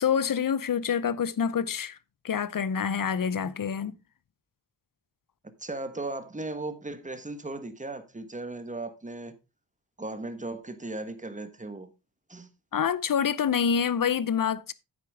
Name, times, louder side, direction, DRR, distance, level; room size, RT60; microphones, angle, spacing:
voice 1, 0.0-2.0 2.2-3.9 12.7-14.7, left 7 dB, 50° left, 0.7 m, -27 dB
voice 2, 5.6-9.3 10.0-11.9 12.3-12.5, right 2 dB, 15° right, 1.3 m, -37 dB
9.6 x 8.3 x 3.5 m
wide cardioid pair, 100°, 43 cm